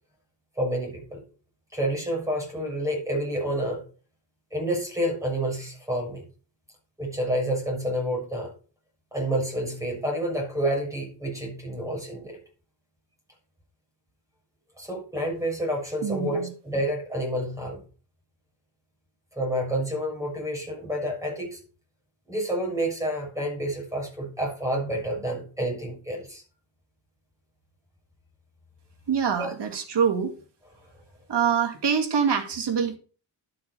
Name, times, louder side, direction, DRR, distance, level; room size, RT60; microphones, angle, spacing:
voice 1, 0.6-1.2 1.7-3.8 4.5-6.2 7.0-8.5 9.1-12.4 14.8-17.8 19.4-21.6 22.3-26.4 29.3-29.5, right 1 dB, 5° right, -1 dB, 6.7 m, -29 dB
voice 2, 16.0-16.5 29.1-30.3 31.3-33.0, right 7 dB, 65° right, 4 dB, 2.5 m, -25 dB
11.5 x 6.7 x 5.4 m, 0.38 s
wide cardioid pair, 115°, 45 cm